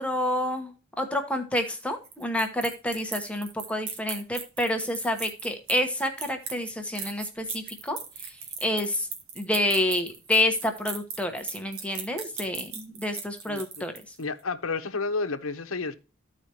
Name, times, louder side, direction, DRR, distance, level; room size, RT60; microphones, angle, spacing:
voice 1, 0.0-8.0 8.2-8.3 8.6-9.1 9.4-13.9, left 1 dB, 5° left, 1.1 m, -28 dB
sound 1, 1.6-14.2, right 6 dB, 90° right, 1.8 m, -38 dB
voice 2, 13.5-13.8 14.2-15.9, left 4 dB, 80° left, 1.0 m, -31 dB
14.5 x 4.9 x 2.9 m
head